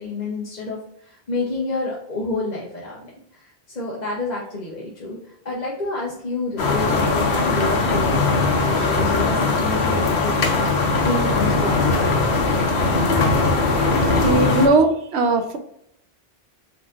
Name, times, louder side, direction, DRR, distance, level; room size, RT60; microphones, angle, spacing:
voice 1, 0.0-12.4, left 2 dB, 45° left, -4 dB, 1.0 m, -29 dB
sound 1, 6.6-14.7, left 3 dB, 85° left, 1.1 m, -20 dB
voice 2, 12.7-13.1 14.0-15.6, right 3 dB, 85° right, 6 dB, 1.0 m, -20 dB
4.2 x 4.0 x 2.5 m, 0.73 s
omnidirectional pair, 1.1 m